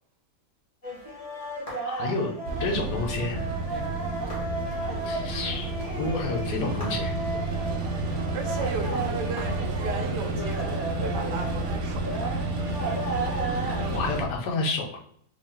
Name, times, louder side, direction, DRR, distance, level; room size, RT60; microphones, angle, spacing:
sound 1, 0.8-14.1, right 2 dB, 25° left, 1.3 m, -34 dB
voice 1, 1.8-2.3 2.6-3.5 5.0-5.7 6.0-7.1 13.9-15.0, left 3 dB, 90° left, 2 dB, 1.4 m, -29 dB
sound 2, 2.5-14.3, right 2 dB, 65° right, 1.0 m, -31 dB
voice 2, 8.3-12.4, right 5 dB, 90° right, 4 dB, 1.4 m, -35 dB
4.4 x 2.8 x 2.8 m, 0.64 s
omnidirectional pair, 1.8 m